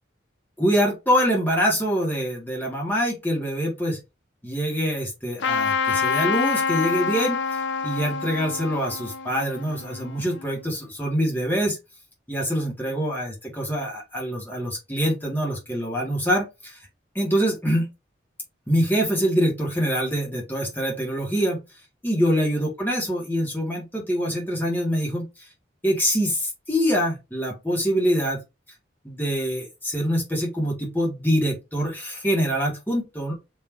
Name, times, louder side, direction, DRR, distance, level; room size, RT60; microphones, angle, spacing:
voice 1, 0.6-4.0 4.4-7.4 7.8-11.8 12.3-16.8 17.1-17.9 18.7-21.6 22.0-25.3 25.8-28.4 29.0-33.3, equal, 10° left, -1 dB, 1.4 m, -24 dB
Trumpet, 5.4-10.5, left 6 dB, 75° left, 0.5 m, -26 dB
3.7 x 2.8 x 3.0 m, 0.24 s
head